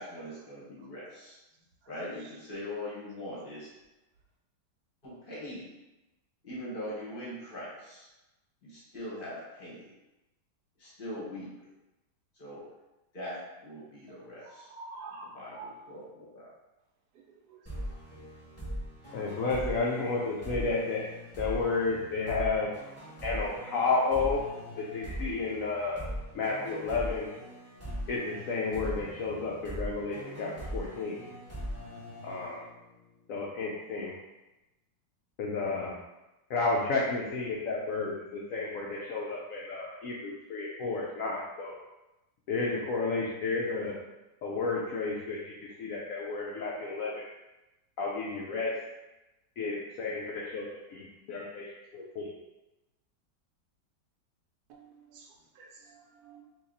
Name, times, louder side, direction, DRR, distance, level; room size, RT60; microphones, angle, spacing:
voice 1, 0.0-1.4 1.9-3.7 5.0-5.7 6.4-8.1 8.6-9.9 10.8-11.7 12.3-12.7 13.1-14.7 15.2-16.5, left 1 dB, 35° left, -7 dB, 1.1 m, -41 dB
voice 2, 14.5-15.7 17.5-17.6 54.7-54.8 55.1-55.3 55.6-56.4, right 3 dB, 70° right, 1 dB, 1.1 m, -47 dB
sound 1, 17.7-33.1, equal, 10° left, 1.0 m, -40 dB
voice 3, 19.1-21.1 21.4-22.7 23.2-24.4 24.8-26.1 26.3-27.3 28.1-31.2 32.2-32.6 33.3-34.1 35.4-35.9 36.5-41.8 42.5-44.0 44.4-47.2 48.0-48.8 49.6-52.3, left 3 dB, 75° left, -3 dB, 0.8 m, -32 dB
2.9 x 2.8 x 3.8 m, 1.0 s
omnidirectional pair, 1.9 m